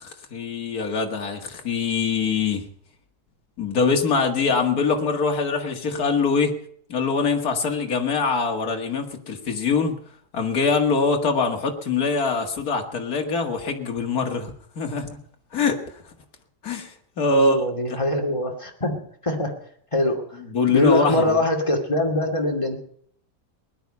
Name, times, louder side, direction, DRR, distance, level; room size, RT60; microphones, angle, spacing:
voice 1, 0.0-2.6 3.6-6.5 6.9-10.0 10.3-15.2 15.5-15.8 16.6-17.6 20.5-21.4, left 4 dB, 50° left, 3 dB, 2.3 m, -23 dB
voice 2, 17.3-19.0 19.2-19.5 19.9-20.2 20.7-22.8, left 1 dB, 15° left, 2 dB, 2.5 m, -22 dB
20.0 x 11.0 x 5.5 m, 0.63 s
omnidirectional pair, 2.2 m